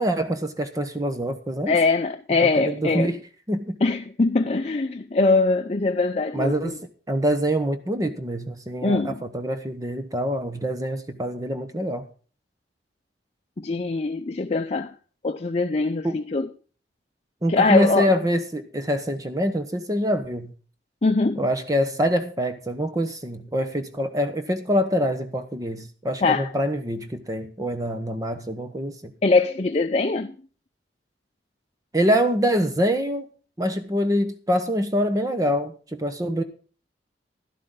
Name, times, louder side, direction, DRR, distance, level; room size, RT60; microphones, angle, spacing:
voice 1, 0.0-1.8 2.6-3.2 3.5-3.8 6.3-6.8 7.1-12.0 16.0-16.2 17.4-20.5 21.4-29.1 31.9-33.2 33.6-36.4, equal, 20° right, 0.9 m, -25 dB
voice 2, 1.7-3.2 3.8-6.8 8.8-9.2 13.6-14.9 15.2-16.5 17.5-18.2 21.0-21.4 26.2-26.5 29.2-30.3, left 3 dB, 40° left, 0.6 m, -22 dB
12.0 x 12.0 x 3.8 m
head